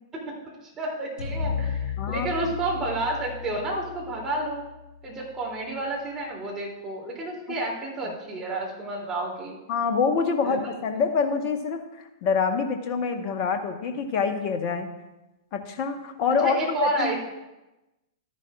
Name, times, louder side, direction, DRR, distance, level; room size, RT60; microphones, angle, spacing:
voice 1, 0.1-1.8 2.1-4.6 5.0-9.5 10.4-10.6 16.4-17.2, right 2 dB, 20° right, -3 dB, 2.8 m, -30 dB
sound 1, 1.2-5.5, left 6 dB, 60° left, 3.4 m, -34 dB
voice 2, 9.7-14.9 15.5-17.2, left 5 dB, 35° left, 6 dB, 1.2 m, -26 dB
12.5 x 10.5 x 2.4 m, 1.0 s
figure-of-eight pair, 105°, 2 cm